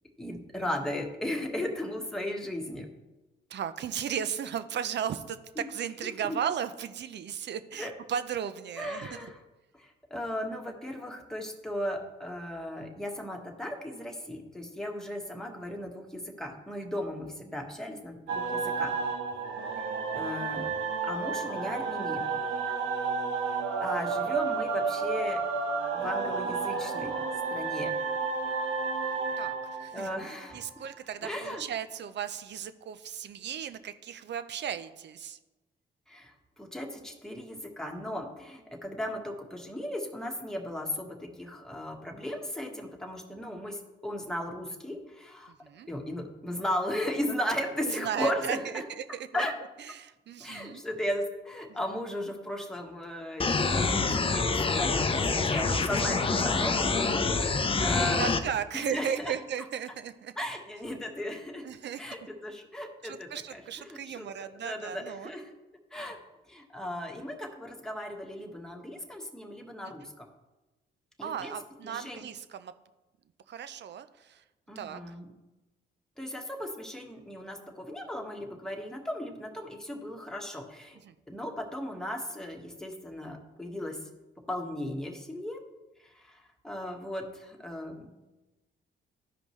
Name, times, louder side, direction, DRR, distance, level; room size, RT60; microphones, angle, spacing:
voice 1, 0.2-2.9 5.6-5.7 6.0-6.4 7.8-7.9 8.8-9.4 9.7-19.0 20.1-20.7 21.0-22.2 23.8-25.4 25.9-27.1 27.5-27.9 29.9-30.7 31.2-31.6 36.1-45.5 45.9-48.8 49.3-49.5 50.4-58.4 58.7-59.3 60.4-61.6 62.0-65.5 65.9-66.2 66.5-70.3 71.2-71.5 71.8-72.2 74.7-75.3 76.2-81.0 81.3-84.0 84.5-85.6 86.0-88.1, left 1 dB, 5° left, 1 dB, 1.5 m, -36 dB
voice 2, 3.5-9.3 29.4-30.1 30.5-35.4 45.6-45.9 47.9-48.6 48.9-49.0 49.3-49.4 49.9-50.8 57.7-57.8 58.2-60.3 61.6-62.0 63.0-65.3 71.2-72.7 73.5-74.4 74.8-75.0 81.0-81.1, right 8 dB, 60° right, 13 dB, 0.6 m, -35 dB
sound 1, 18.3-30.9, right 4 dB, 80° right, 0.9 m, -31 dB
sound 2, 53.4-58.4, left 4 dB, 25° left, 0.7 m, -26 dB
12.5 x 5.1 x 3.2 m, 1.1 s
supercardioid pair, 65°, 20 cm